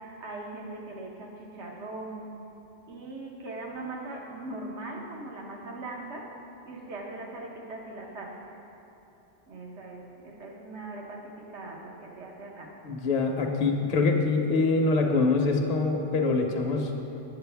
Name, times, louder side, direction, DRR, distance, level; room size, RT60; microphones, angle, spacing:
voice 1, 0.0-2.2 2.9-6.4 6.7-8.5 9.5-12.8, right 2 dB, 80° right, -1 dB, 1.3 m, -40 dB
voice 2, 12.8-16.9, left 3 dB, 40° left, 2 dB, 0.7 m, -24 dB
8.3 x 7.8 x 3.4 m, 3.0 s
omnidirectional pair, 1.2 m